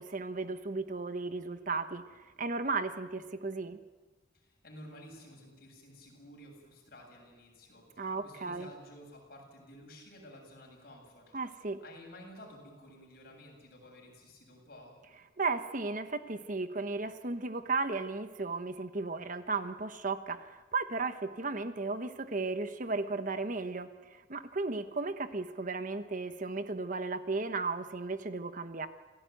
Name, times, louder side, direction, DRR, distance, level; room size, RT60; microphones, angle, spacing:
voice 1, 0.0-3.8 8.0-8.7 11.3-11.8 15.4-28.9, right 3 dB, 45° right, 10 dB, 1.0 m, -35 dB
voice 2, 4.3-11.4 11.8-15.0, left 1 dB, 50° left, 0 dB, 7.6 m, -52 dB
27.0 x 17.0 x 9.3 m, 1.3 s
head